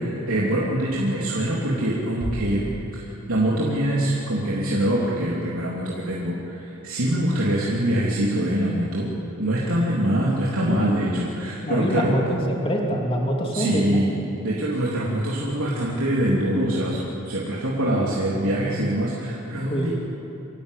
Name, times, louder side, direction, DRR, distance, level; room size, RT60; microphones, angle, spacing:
voice 1, 0.0-2.6 2.9-9.1 9.4-12.1 13.5-14.1 14.4-17.0 17.3-19.9, right 1 dB, 80° right, -6 dB, 3.4 m, -24 dB
Bass drum, 2.2-3.6, right 1 dB, 40° right, 1.0 m, -35 dB
voice 2, 11.6-14.0 19.7-19.9, equal, 25° left, -1 dB, 3.1 m, -24 dB
25.5 x 17.0 x 8.5 m, 2.9 s
head